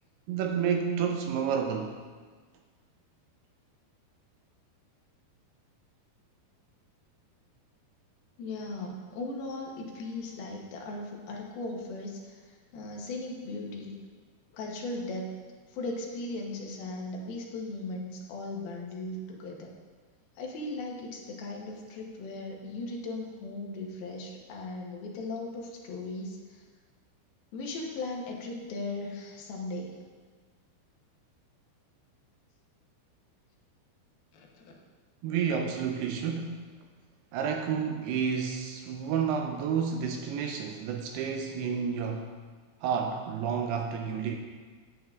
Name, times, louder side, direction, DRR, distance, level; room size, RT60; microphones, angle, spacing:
voice 1, 0.3-2.0 35.2-36.6 37.3-42.3 42.8-44.4, right 7 dB, 80° right, 4 dB, 2.4 m, -30 dB
voice 2, 8.4-14.0 14.5-15.3 15.7-19.7 20.4-26.6 27.5-30.0 34.3-34.8, left 2 dB, 70° left, -1 dB, 2.6 m, -38 dB
11.0 x 9.1 x 2.4 m, 1.5 s
omnidirectional pair, 4.9 m